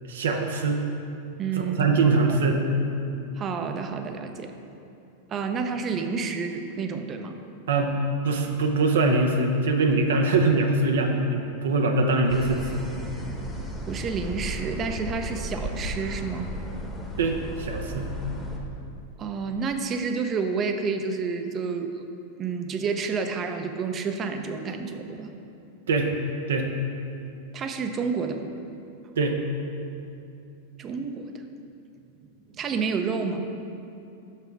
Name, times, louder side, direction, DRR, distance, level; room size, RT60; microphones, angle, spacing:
voice 1, 0.0-0.8 1.6-2.7 7.7-7.9 8.2-12.8 17.2-18.1 25.9-26.1 26.5-26.7 29.2-29.4, right 3 dB, 80° right, 3 dB, 0.7 m, -23 dB
voice 2, 1.4-1.9 2.3-2.4 3.4-4.5 5.3-7.4 13.9-16.5 19.2-22.1 22.4-25.3 27.5-28.5 30.8-31.3 32.5-33.5, right 5 dB, 30° right, 6 dB, 0.6 m, -29 dB
sound 1, 12.3-18.6, equal, 10° left, 1.1 m, -35 dB
5.9 x 5.8 x 4.6 m, 2.7 s
hypercardioid pair, 110°, 0 cm